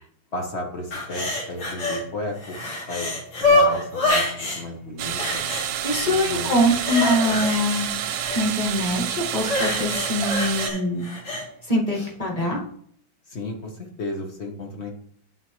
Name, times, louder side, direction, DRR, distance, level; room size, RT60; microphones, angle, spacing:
voice 1, 0.3-2.6 2.9-5.4 6.0-6.5 7.1-7.4 13.3-14.9, left 1 dB, 45° left, 2 dB, 1.0 m, -33 dB
sound 1, 0.9-2.0 2.4-4.6 5.2-6.1 6.4-8.4 9.4-11.4 11.9-12.1, left 2 dB, 90° left, 2.4 m, -25 dB
sound 2, 5.0-10.7, right 10 dB, 75° right, 1.1 m, -29 dB
voice 2, 5.8-7.9 8.3-11.1 11.7-12.6, equal, 20° left, -2 dB, 1.3 m, -23 dB
9.5 x 3.7 x 3.0 m, 0.64 s
omnidirectional pair, 2.2 m